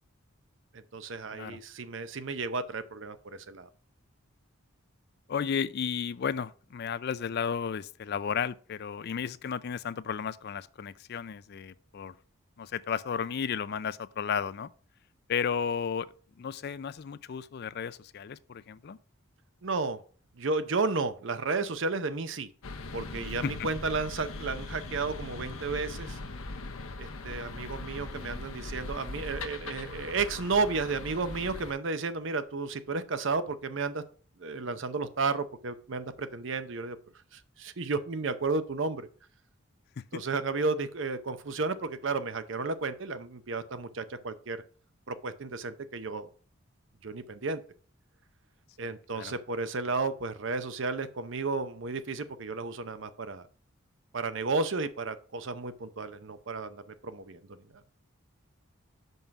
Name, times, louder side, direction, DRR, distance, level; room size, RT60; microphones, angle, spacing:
voice 1, 0.7-3.7 19.6-20.0 20.4-22.5 22.9-26.2 27.0-34.0 34.4-37.0 37.3-39.1 40.1-44.6 45.1-46.3 47.0-47.6 48.8-53.5 54.1-57.8, right 3 dB, 60° right, 0.7 m, -33 dB
voice 2, 5.3-12.2 12.6-14.7 15.3-16.1 16.4-19.0 23.4-23.5 40.0-40.2 49.1-49.3, left 7 dB, 50° left, 0.4 m, -33 dB
sound 1, 22.6-31.7, left 2 dB, 90° left, 0.8 m, -40 dB
5.5 x 5.4 x 5.9 m
head